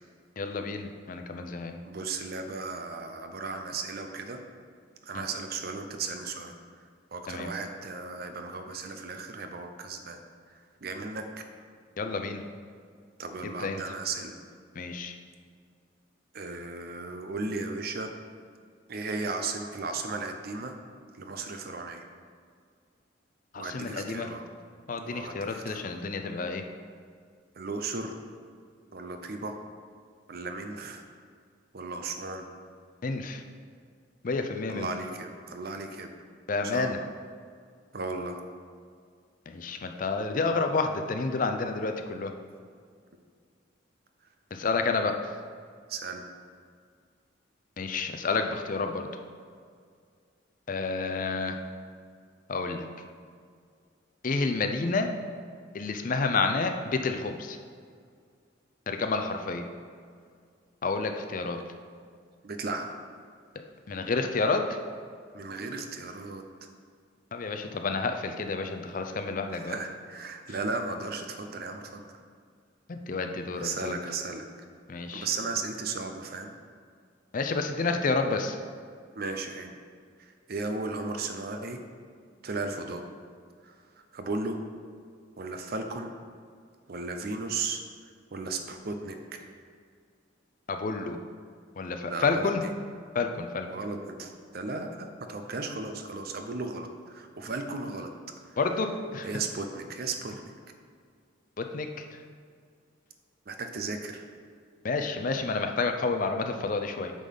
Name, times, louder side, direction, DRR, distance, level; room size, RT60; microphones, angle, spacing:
voice 1, 0.4-1.8 5.1-5.2 7.3-7.5 12.0-12.4 13.4-13.8 14.8-15.2 23.5-24.3 24.9-26.6 33.0-33.4 34.2-34.9 36.5-37.0 39.5-42.3 44.5-45.1 47.8-49.1 50.7-51.6 52.5-52.9 54.2-55.1 55.7-57.6 58.9-59.6 60.8-61.6 63.9-64.8 67.3-69.7 70.5-70.6 72.9-74.0 74.9-75.3 77.3-78.6 90.7-91.2 91.8-92.6 93.1-93.7 98.6-99.3 101.6-102.2 104.8-107.1, left 4 dB, 45° left, 6 dB, 0.5 m, -30 dB
voice 2, 1.9-4.4 5.0-6.5 7.1-10.2 10.8-11.2 13.2-14.3 16.3-18.1 18.9-20.8 21.2-22.0 23.6-24.4 25.1-26.0 27.6-28.1 28.9-29.6 30.3-31.0 31.7-32.5 34.7-36.1 36.6-36.9 37.9-38.4 45.9-46.2 62.4-62.9 65.3-66.4 69.5-72.0 73.6-74.4 75.1-76.5 79.2-79.7 80.5-81.8 82.4-83.0 83.6-83.7 84.1-84.6 85.4-86.1 86.9-87.8 88.3-89.4 92.1-92.5 93.7-98.1 99.2-100.5 103.5-104.3, right 3 dB, 50° right, 6 dB, 0.6 m, -35 dB
8.3 x 3.9 x 5.5 m, 2.1 s
head